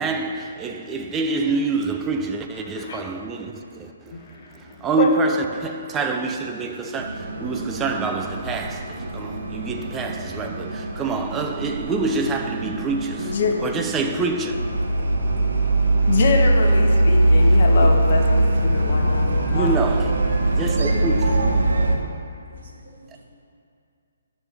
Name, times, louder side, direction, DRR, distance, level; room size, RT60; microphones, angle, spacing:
voice 1, 0.0-14.7 17.8-18.0 19.5-21.5, right 3 dB, 10° right, 0.4 m, -27 dB
voice 2, 4.1-5.2 13.2-13.6 16.1-19.8, left 4 dB, 45° left, 1.0 m, -25 dB
sound 1, 7.0-21.9, right 1 dB, 75° right, 1.0 m, -21 dB
voice 3, 15.0-16.2 20.8-20.9 21.2-21.5 22.5-23.2, right 3 dB, 55° right, 1.4 m, -38 dB
11.0 x 6.3 x 3.3 m
hypercardioid pair, 165°, 0 cm